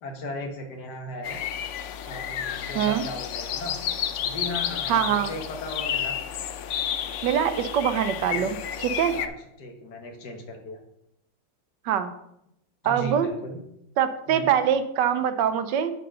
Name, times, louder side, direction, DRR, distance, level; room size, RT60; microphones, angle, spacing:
voice 1, 0.0-1.4 2.1-3.8 4.2-6.2 8.3-8.5 9.1-10.8 12.8-13.6 14.3-14.5, left 1 dB, 65° left, 3 dB, 1.9 m, -37 dB
sound 1, 1.2-9.3, left 9 dB, 90° left, 0.6 m, -31 dB
voice 2, 4.9-5.3 7.2-9.2 11.9-12.1 12.8-13.3 14.0-15.9, right 9 dB, 80° right, 10 dB, 1.4 m, -24 dB
7.5 x 4.5 x 6.3 m, 0.78 s
omnidirectional pair, 1.9 m